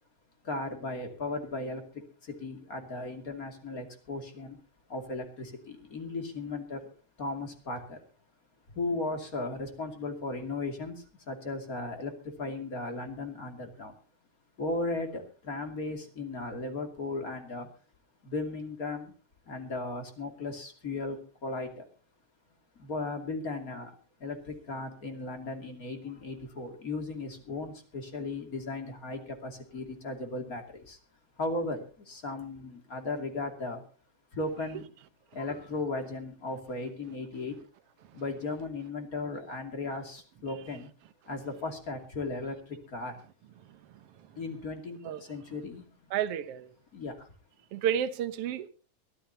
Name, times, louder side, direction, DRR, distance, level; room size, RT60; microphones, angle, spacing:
voice 1, 0.4-4.6 4.9-6.8 7.2-8.0 8.7-13.9 14.6-17.7 18.2-19.1 19.5-21.8 22.8-31.0 31.4-33.8 34.3-34.8 35.3-37.6 38.1-40.9 41.3-43.2 44.4-46.1 46.9-47.3, left 2 dB, 30° left, 2.7 m, -36 dB
voice 2, 43.6-44.4 45.0-45.2 46.1-46.7 47.7-48.7, right 9 dB, 65° right, 1.6 m, -33 dB
23.0 x 14.5 x 2.9 m
omnidirectional pair, 3.6 m